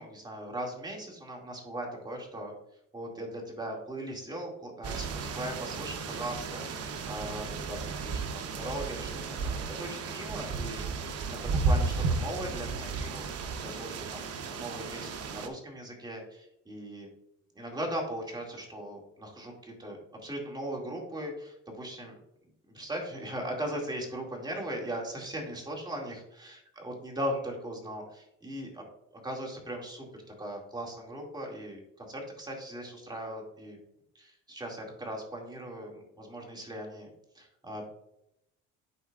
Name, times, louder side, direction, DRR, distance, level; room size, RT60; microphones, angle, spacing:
voice 1, 0.0-2.5 2.9-7.8 8.0-10.8 11.3-13.3 13.6-17.1 17.6-20.0 20.2-22.2 22.7-28.8 29.1-30.1 30.4-33.8 34.1-37.1 37.3-37.9, right 1 dB, 15° right, -1 dB, 2.2 m, -39 dB
sound 1, 4.8-15.5, right 4 dB, 50° right, 0.9 m, -33 dB
11.0 x 4.4 x 2.4 m, 0.82 s
cardioid pair, 100°, 32 cm